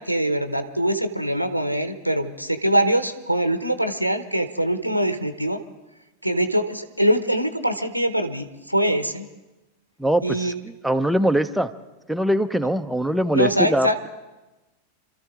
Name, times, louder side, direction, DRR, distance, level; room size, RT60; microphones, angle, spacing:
voice 1, 0.0-5.6 6.2-9.3 10.2-10.5 13.3-14.0, right 1 dB, 90° right, 10 dB, 0.9 m, -23 dB
voice 2, 10.0-10.5 10.8-11.7 12.1-14.1, right 1 dB, ahead, 8 dB, 0.7 m, -22 dB
27.5 x 13.5 x 3.7 m, 1.1 s
figure-of-eight pair, 90°, 0 cm